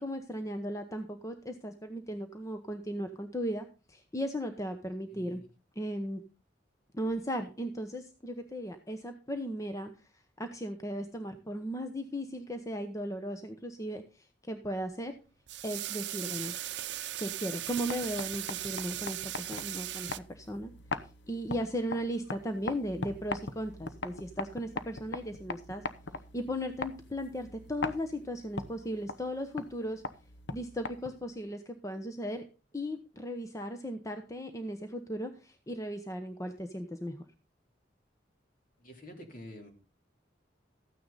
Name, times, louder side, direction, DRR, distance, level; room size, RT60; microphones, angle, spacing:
voice 1, 0.0-5.4 5.8-6.2 6.9-10.1 10.4-15.1 15.6-16.6 17.2-20.7 21.3-25.8 26.3-30.0 30.5-32.4 32.7-37.2, equal, 20° left, 7 dB, 0.9 m, -36 dB
voice 2, 5.1-5.4 38.8-39.7, equal, 50° left, 3 dB, 3.3 m, -48 dB
sound 1, 15.5-20.2, right 13 dB, 70° right, 0.6 m, -38 dB
sound 2, 17.6-31.4, left 3 dB, 75° left, 0.9 m, -41 dB
14.0 x 9.4 x 4.0 m, 0.33 s
head